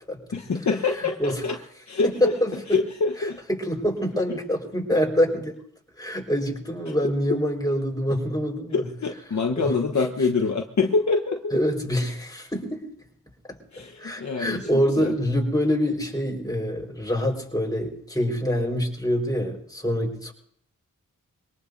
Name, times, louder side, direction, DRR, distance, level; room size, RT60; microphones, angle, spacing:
voice 1, 0.3-1.6 1.9-2.3 2.7-3.4 8.7-11.5 13.7-15.1, left 4 dB, 55° left, 3 dB, 1.3 m, -25 dB
voice 2, 1.0-1.4 2.0-2.8 3.5-5.6 6.0-8.9 9.6-9.8 11.5-12.8 13.5-13.6 14.0-20.3, equal, 10° left, 1 dB, 4.8 m, -25 dB
23.5 x 18.5 x 2.7 m, 0.67 s
cardioid pair, 55°, 34 cm